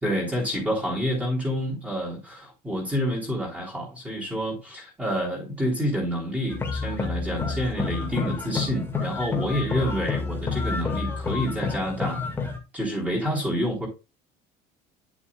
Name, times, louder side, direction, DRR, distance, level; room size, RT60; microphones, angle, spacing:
voice 1, 0.0-12.2 12.7-13.9, equal, 10° right, 3.9 m, -28 dB
sound 1, 6.5-12.6, left 4 dB, 15° left, 2.0 m, -29 dB
11.0 x 7.1 x 2.4 m
cardioid pair, 175°, 17 cm